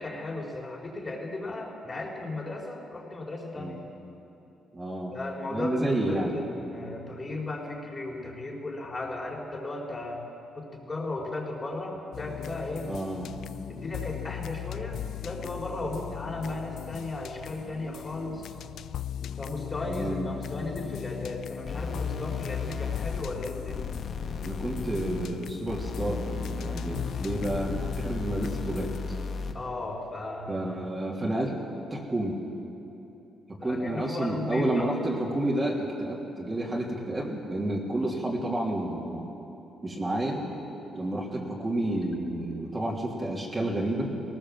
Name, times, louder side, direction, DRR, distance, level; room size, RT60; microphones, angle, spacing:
voice 1, 0.0-3.8 5.1-10.3 10.5-12.9 13.7-18.5 19.4-23.9 29.5-30.6 33.6-34.9 41.9-42.1 42.6-42.8, left 2 dB, 30° left, -1 dB, 4.3 m, -36 dB
voice 2, 4.7-5.1 5.5-6.4 12.8-13.3 19.9-20.3 24.4-29.2 30.5-31.5 31.9-32.4 33.5-39.3 39.8-40.4 40.9-44.1, right 1 dB, 25° right, -3 dB, 3.1 m, -30 dB
sound 1, 12.1-29.0, left 11 dB, 70° left, 0.5 m, -38 dB
sound 2, 21.7-29.7, left 4 dB, 55° left, 1.5 m, -35 dB
18.5 x 18.5 x 7.6 m, 2.9 s
cardioid pair, 90°, 0 cm